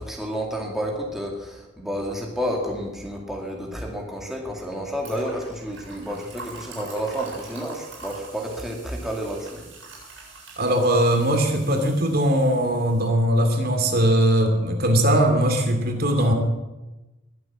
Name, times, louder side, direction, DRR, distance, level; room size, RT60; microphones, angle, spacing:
voice 1, 0.0-9.6, equal, ahead, -1 dB, 2.3 m, -30 dB
sound 1, 5.0-13.1, right 3 dB, 75° right, 7.5 m, -43 dB
voice 2, 10.6-16.3, right 1 dB, 50° right, 4 dB, 2.6 m, -20 dB
21.5 x 8.0 x 7.4 m, 1.1 s
head